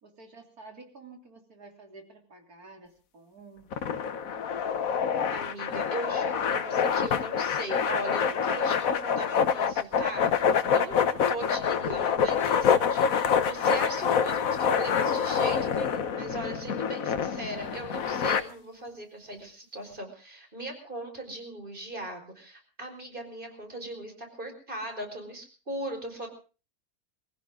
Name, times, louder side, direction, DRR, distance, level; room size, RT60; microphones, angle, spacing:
voice 1, 0.0-4.6, right 3 dB, 80° right, 4 dB, 3.8 m, -51 dB
sound 1, 3.7-18.4, left 7 dB, 70° left, 1.5 m, -26 dB
voice 2, 5.3-26.3, right 1 dB, 35° right, 4 dB, 5.4 m, -38 dB
24.0 x 15.5 x 3.7 m, 0.36 s
omnidirectional pair, 1.6 m